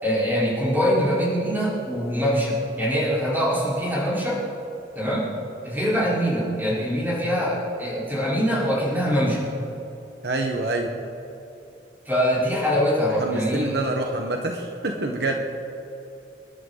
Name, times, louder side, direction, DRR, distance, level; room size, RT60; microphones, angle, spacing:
voice 1, 0.0-4.4 4.9-5.3 5.6-9.4 12.0-13.7, equal, 10° right, -7 dB, 4.8 m, -23 dB
voice 2, 10.2-10.9 13.2-15.4, right 2 dB, 60° right, 2 dB, 1.4 m, -26 dB
28.5 x 11.5 x 4.1 m, 2.9 s
head